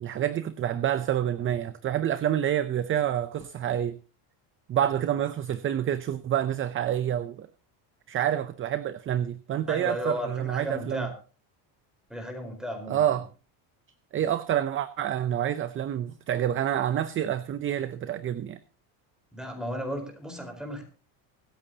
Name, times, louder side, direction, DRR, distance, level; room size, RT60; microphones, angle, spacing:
voice 1, 0.0-4.0 4.7-7.5 8.1-11.1 12.9-13.3 14.1-18.6, right 10 dB, 25° right, 0.5 m, -28 dB
voice 2, 9.7-11.1 12.1-13.1 19.3-20.8, equal, ahead, 4.3 m, -34 dB
24.5 x 8.8 x 2.8 m
cardioid pair, 140°, 49 cm